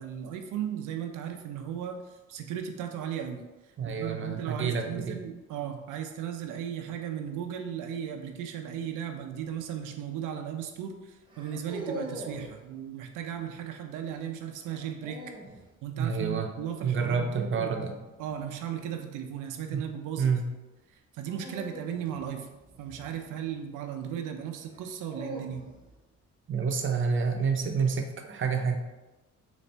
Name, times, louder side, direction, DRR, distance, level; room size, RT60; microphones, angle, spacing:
voice 1, 0.0-2.0 2.3-3.5 3.8-15.2 15.8-20.3 20.9-22.5 22.8-25.6, right 9 dB, 90° right, 4 dB, 0.5 m, -36 dB
voice 2, 3.8-5.2 16.0-16.5 16.8-18.0 19.7-19.8 20.2-20.5 26.5-28.8, right 5 dB, 40° right, 4 dB, 0.6 m, -28 dB
sound 1, 9.4-9.8 11.3-12.6 14.6-15.6 18.1-18.5 21.2-23.6 24.7-26.0, right 1 dB, 15° right, 0.8 m, -42 dB
4.1 x 2.5 x 3.2 m, 1.1 s
cardioid pair, 90°, 30 cm